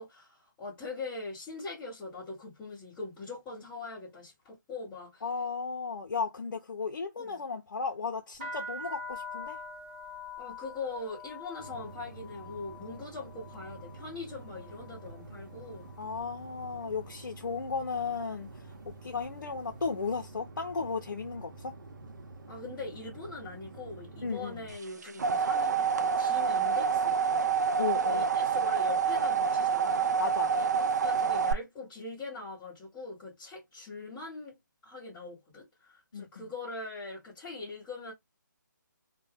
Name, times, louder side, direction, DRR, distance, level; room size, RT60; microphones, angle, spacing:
voice 1, 0.0-5.2 7.2-7.4 10.4-15.9 22.5-27.5 28.1-30.2 30.6-34.6 34.8-38.1, left 3 dB, 10° left, 1.0 m, -42 dB
voice 2, 5.2-9.6 16.0-18.7 19.0-21.7 24.2-24.6 27.8-28.3 30.2-30.5 36.1-36.5, left 5 dB, 70° left, 0.7 m, -35 dB
sound 1, 8.3-16.3 16.5-17.2 17.8-18.1 18.4-19.8, left 3 dB, 25° right, 1.1 m, -45 dB
sound 2, 11.6-24.8, right 2 dB, 75° right, 0.9 m, -48 dB
sound 3, 24.8-31.5, right 6 dB, 55° right, 0.4 m, -27 dB
2.5 x 2.2 x 3.4 m
hypercardioid pair, 165°, 11 cm